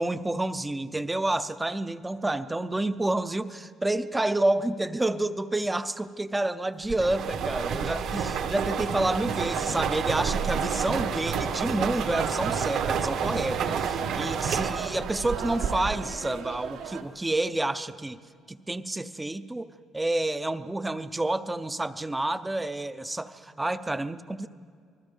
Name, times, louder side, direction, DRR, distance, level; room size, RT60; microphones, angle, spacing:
voice 1, 0.0-18.2 18.5-24.5, right 2 dB, 10° right, 13 dB, 0.5 m, -29 dB
sound 1, 6.9-16.2, right 6 dB, 55° right, 1.2 m, -30 dB
sound 2, 9.3-17.0, right 7 dB, 80° right, 1.6 m, -37 dB
27.5 x 20.5 x 5.4 m, 2.2 s
cardioid pair, 175°, 0 cm